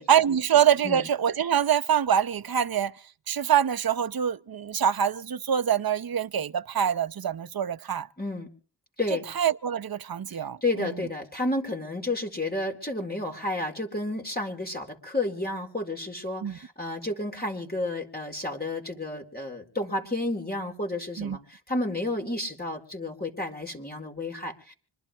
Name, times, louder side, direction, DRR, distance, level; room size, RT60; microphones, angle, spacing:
voice 1, 0.1-2.9 3.3-8.1 9.3-10.9 16.4-16.6 21.2-21.4, right 9 dB, 50° right, 0.8 m, -25 dB
voice 2, 8.2-8.5 9.0-9.3 10.3-24.7, left 2 dB, 20° left, 4.2 m, -31 dB
26.0 x 11.5 x 3.5 m
cardioid pair, 40°, 47 cm